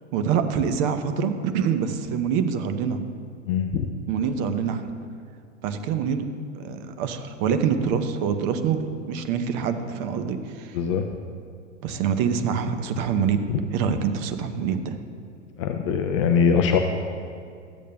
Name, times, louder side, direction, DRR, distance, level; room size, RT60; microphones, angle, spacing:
voice 1, 0.1-3.0 4.1-4.8 5.6-6.2 6.5-10.8 11.8-13.4 13.7-15.0, right 7 dB, 35° right, 8 dB, 0.7 m, -25 dB
voice 2, 3.5-3.9 10.7-11.1 15.6-16.8, left 6 dB, 30° left, 5 dB, 0.3 m, -22 dB
13.5 x 8.2 x 2.3 m, 2.4 s
figure-of-eight pair, 105°, 37 cm